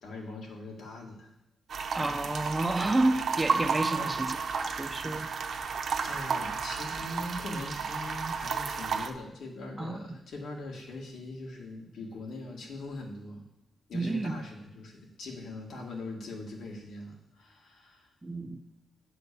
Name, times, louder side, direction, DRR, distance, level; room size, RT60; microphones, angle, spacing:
voice 1, 0.0-1.3 4.0-4.6 6.0-13.5 13.9-18.1, left 2 dB, 75° left, 0 dB, 1.9 m, -42 dB
sound 1, 1.7-9.1, right 5 dB, 55° right, 0.8 m, -32 dB
voice 2, 1.9-5.3 9.8-10.2 13.9-14.4 18.2-18.6, right 2 dB, 15° right, 8 dB, 0.4 m, -30 dB
9.5 x 4.2 x 6.8 m, 0.88 s
wide cardioid pair, 175°, 0 cm